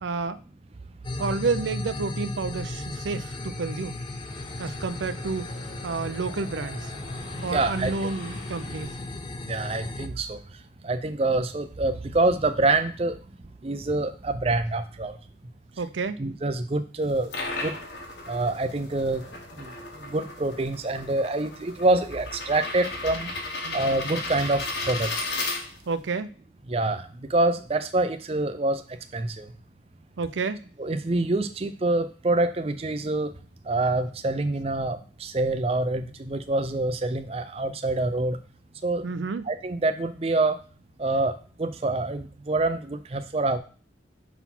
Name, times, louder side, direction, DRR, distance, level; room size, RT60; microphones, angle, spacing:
voice 1, 0.0-0.4 1.2-4.0 4.6-5.5 5.8-6.9 7.4-8.9 15.8-16.2 23.6-23.9 25.9-26.3 30.2-30.6 39.0-39.5, right 4 dB, 80° right, 13 dB, 0.5 m, -30 dB
sound 1, 1.0-10.1, left 2 dB, 25° left, 0.4 m, -36 dB
sound 2, 2.3-9.5, left 1 dB, 85° left, 1.7 m, -47 dB
voice 2, 7.4-8.1 9.5-10.4 10.8-13.2 13.6-15.2 16.2-17.3 17.6-17.7 18.3-19.2 19.6-19.7 20.0-23.3 23.7-25.1 26.7-27.0 27.3-28.8 29.1-29.5 30.8-33.3 33.7-38.4 38.8-39.0 39.5-40.6 41.0-43.6, right 2 dB, 30° right, 9 dB, 0.5 m, -26 dB
sound 3, 17.0-26.0, left 2 dB, 70° left, 1.4 m, -35 dB
5.7 x 4.0 x 5.9 m, 0.39 s
head